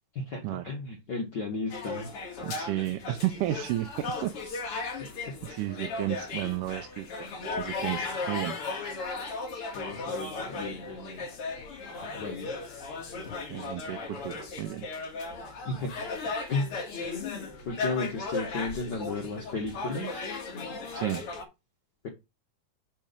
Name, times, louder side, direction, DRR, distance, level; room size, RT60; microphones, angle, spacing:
voice 1, 0.1-2.1 5.2-5.4 9.7-11.2 12.1-12.5 15.6-16.1 16.5-16.8 17.6-20.2, left 3 dB, 80° left, 0.9 m, -34 dB
sound 1, 1.7-21.4, left 3 dB, 50° left, 2.4 m, -36 dB
voice 2, 2.4-3.9 4.2-4.6 5.4-8.6 13.5-14.9 21.0-21.3, right 15 dB, 80° right, 2.1 m, -32 dB
6.7 x 5.8 x 5.1 m
omnidirectional pair, 3.8 m